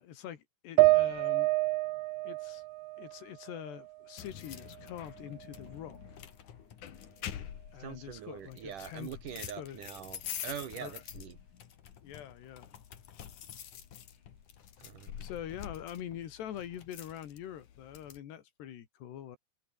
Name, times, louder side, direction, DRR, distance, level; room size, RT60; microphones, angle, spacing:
voice 1, 0.0-1.5 2.2-2.6 3.0-6.0 7.7-9.8 10.7-11.0 12.0-12.8 15.2-19.4, left 10 dB, 80° left, 4.4 m, -44 dB
sound 1, 0.8-4.2 4.6-5.6, right 21 dB, 80° right, 2.4 m, -29 dB
sound 2, 4.2-18.2, left 9 dB, 55° left, 3.1 m, -47 dB
voice 2, 7.8-11.4 14.8-15.1, right 9 dB, 60° right, 2.7 m, -43 dB
omnidirectional pair, 4.8 m